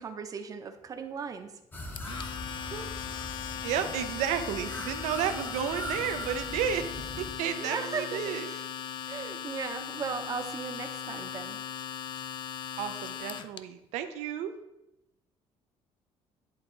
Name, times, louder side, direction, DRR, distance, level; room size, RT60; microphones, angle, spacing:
voice 1, 0.0-1.5 1.8-2.0 2.7-2.9 5.6-5.7 7.6-8.7 9.0-11.6, right 5 dB, 30° right, 7 dB, 0.7 m, -37 dB
sound 1, 1.7-7.3, left 1 dB, 15° left, 0.7 m, -40 dB
Domestic sounds home sounds, 2.0-13.6, left 9 dB, 40° left, 0.3 m, -38 dB
voice 2, 3.6-8.5 12.8-14.5, right 9 dB, 90° right, 8 dB, 0.6 m, -32 dB
10.5 x 3.5 x 3.8 m, 0.89 s
cardioid pair, 140°, 11 cm